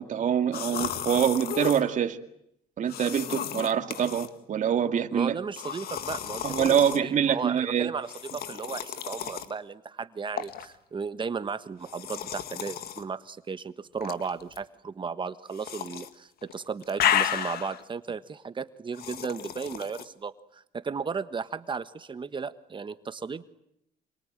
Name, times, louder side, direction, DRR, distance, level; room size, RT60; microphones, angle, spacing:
voice 1, 0.0-2.2 2.8-5.4 6.4-7.9, right 8 dB, 50° right, 2.3 m, -25 dB
sound 1, 0.5-1.8 2.9-4.3 5.6-7.0 8.0-9.5 10.4-10.7 11.8-13.0 14.0-14.6 15.6-16.1 16.4-17.8 19.0-20.1, left 10 dB, 65° left, 1.8 m, -32 dB
voice 2, 5.1-23.4, right 5 dB, 30° right, 1.4 m, -35 dB
27.5 x 24.0 x 9.0 m
cardioid pair, 110°, 17 cm